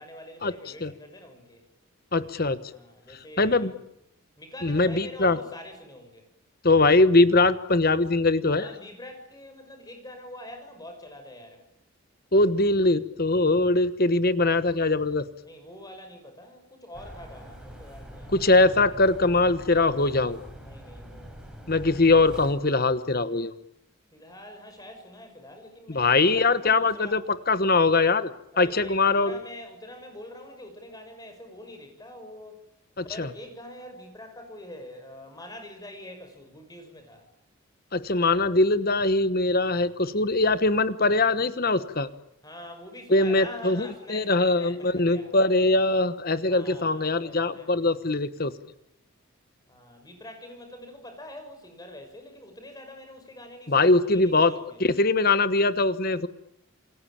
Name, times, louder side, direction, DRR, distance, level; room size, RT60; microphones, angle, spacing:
voice 1, 0.0-1.6 2.7-3.8 4.4-6.3 8.6-11.6 15.5-18.5 20.6-22.0 24.1-27.2 28.5-32.6 33.1-37.2 42.4-45.6 46.5-47.9 49.7-54.8, left 1 dB, 15° left, 5 dB, 6.0 m, -45 dB
voice 2, 2.1-2.6 3.4-3.7 4.6-5.4 6.6-8.7 12.3-15.2 18.3-20.4 21.7-23.5 25.9-28.3 28.6-29.4 33.0-33.3 37.9-42.1 43.1-48.5 53.7-56.3, left 2 dB, 45° left, 13 dB, 1.2 m, -22 dB
sound 1, 16.9-22.5, equal, 5° right, 5.7 m, -44 dB
28.5 x 23.0 x 8.8 m, 0.76 s
head